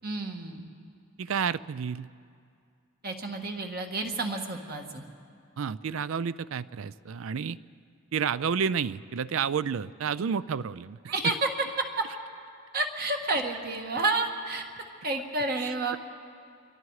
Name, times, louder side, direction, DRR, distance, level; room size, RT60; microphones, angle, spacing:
voice 1, 0.0-0.6 3.0-5.0 11.1-11.3 12.0-12.1 12.7-14.6 15.0-16.0, right 2 dB, 45° right, 3 dB, 1.7 m, -30 dB
voice 2, 1.2-2.1 5.6-7.6 8.1-11.4 15.6-16.0, right 6 dB, 65° right, 18 dB, 0.4 m, -30 dB
27.0 x 23.0 x 4.8 m, 2.3 s
head